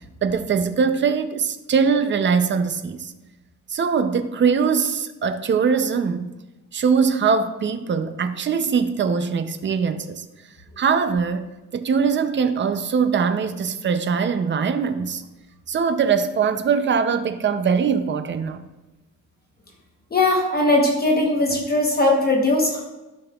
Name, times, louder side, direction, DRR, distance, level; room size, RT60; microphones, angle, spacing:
voice 1, 0.2-3.1 3.7-6.4 6.7-10.2 10.8-11.5 11.7-15.2 15.7-18.7, right 6 dB, 35° right, 9 dB, 0.5 m, -22 dB
voice 2, 20.1-22.8, left 2 dB, 30° left, 0 dB, 1.0 m, -19 dB
12.5 x 5.5 x 2.3 m, 1.1 s
wide cardioid pair, 150°, 32 cm